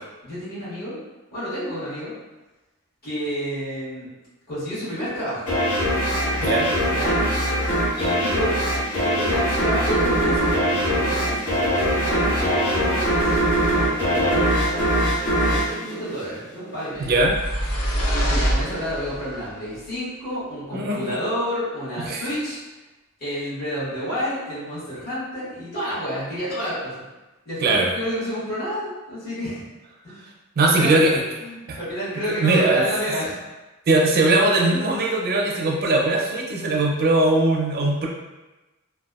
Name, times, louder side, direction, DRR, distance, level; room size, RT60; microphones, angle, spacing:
voice 1, 0.2-1.0 1.3-2.1 3.0-4.1 4.5-5.5 6.9-7.2 7.9-8.6 8.9-11.5 12.0-17.1 18.1-22.6 23.2-26.9 27.4-29.6 30.0-30.1 30.6-31.0 31.4-33.4, equal, 45° left, -13 dB, 1.4 m, -30 dB
sound 1, 5.5-16.7, equal, 90° left, 1.0 m, -22 dB
sound 2, 17.0-19.4, equal, 70° left, 0.6 m, -25 dB
voice 2, 17.0-17.4 20.7-21.2 22.1-22.3 27.6-27.9 30.6-31.2 31.7-31.8 32.3-32.9 33.9-38.1, right 2 dB, 45° right, -1 dB, 0.4 m, -20 dB
2.7 x 2.2 x 2.3 m, 1.1 s
head